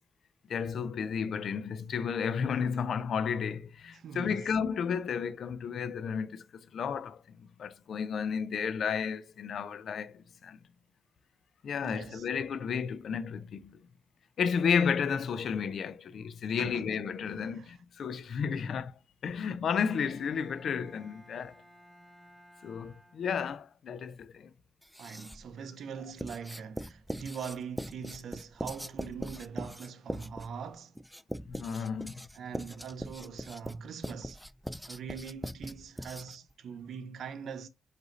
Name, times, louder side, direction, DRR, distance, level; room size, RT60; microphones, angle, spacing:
voice 1, 0.5-10.6 11.6-13.8 14.4-18.9 19.2-21.6 22.6-24.5 31.5-32.3, left 6 dB, 70° left, 0.5 m, -32 dB
voice 2, 3.9-4.5 11.8-12.3 16.6-16.9 17.4-17.7 25.0-31.0 32.3-34.4 34.9-37.7, right 6 dB, 70° right, 0.5 m, -42 dB
Bowed string instrument, 19.9-23.7, equal, 25° right, 2.6 m, -57 dB
Writing, 24.8-25.5 26.2-36.5, equal, ahead, 0.4 m, -41 dB
4.9 x 2.7 x 3.9 m
cardioid pair, 60°, 0 cm